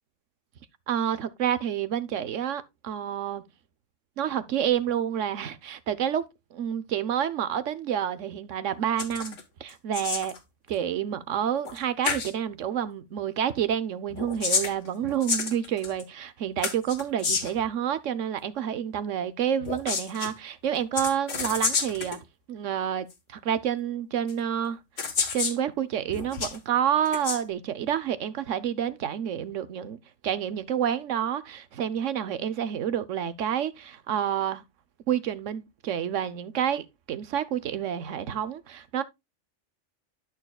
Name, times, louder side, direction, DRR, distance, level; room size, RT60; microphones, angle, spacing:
voice 1, 0.9-3.4 4.2-6.3 6.5-10.3 10.7-22.2 22.5-24.8 25.3-34.6 35.1-39.0, right 9 dB, 80° right, 1.2 m, -29 dB
sound 1, 9.0-9.4 9.7-10.4 11.7-11.8 12.0-12.3 14.1-16.0 16.6-17.6 19.6-20.3 21.0-22.2 23.1-23.2 24.3-24.4 25.0-25.6 26.1-26.6 27.1-27.4, left 5 dB, 80° left, 1.8 m, -29 dB
12.0 x 6.6 x 2.3 m
omnidirectional pair, 1.3 m